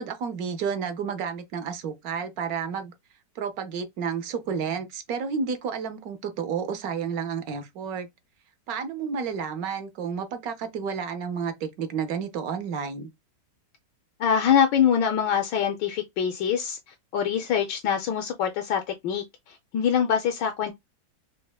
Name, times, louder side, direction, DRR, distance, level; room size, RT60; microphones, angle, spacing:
voice 1, 0.0-2.9 3.4-8.1 8.7-13.1, right 6 dB, 65° right, 1.0 m, -31 dB
voice 2, 14.2-16.8 17.1-20.7, left 8 dB, 80° left, 1.2 m, -24 dB
5.3 x 2.0 x 2.2 m
omnidirectional pair, 1.9 m